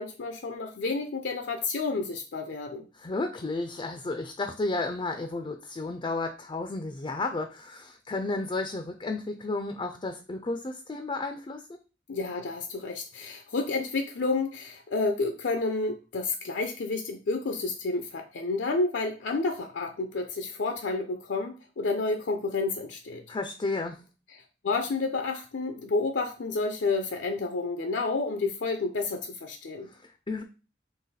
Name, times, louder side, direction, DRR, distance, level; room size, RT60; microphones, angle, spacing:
voice 1, 0.0-2.8 12.1-23.2 24.6-29.9, left 3 dB, 80° left, 5 dB, 0.5 m, -30 dB
voice 2, 2.9-11.8 23.3-24.0 29.9-30.4, left 2 dB, 25° left, 5 dB, 0.4 m, -32 dB
3.9 x 3.0 x 4.1 m, 0.33 s
head